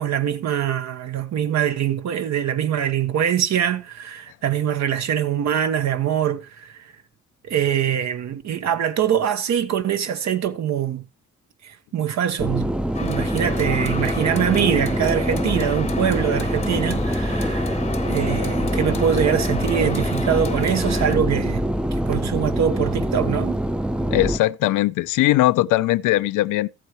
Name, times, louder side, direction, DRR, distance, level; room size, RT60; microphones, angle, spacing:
voice 1, 0.0-6.9 7.4-11.0 11.6-21.7 22.1-23.6, right 9 dB, 65° right, 1.1 m, -23 dB
sound 1, 12.4-24.4, right 1 dB, 5° right, 0.5 m, -24 dB
sound 2, 12.9-21.2, left 4 dB, 20° left, 0.8 m, -32 dB
voice 2, 24.1-26.7, left 16 dB, 90° left, 0.5 m, -20 dB
14.0 x 8.4 x 3.0 m
cardioid pair, 90°, 30 cm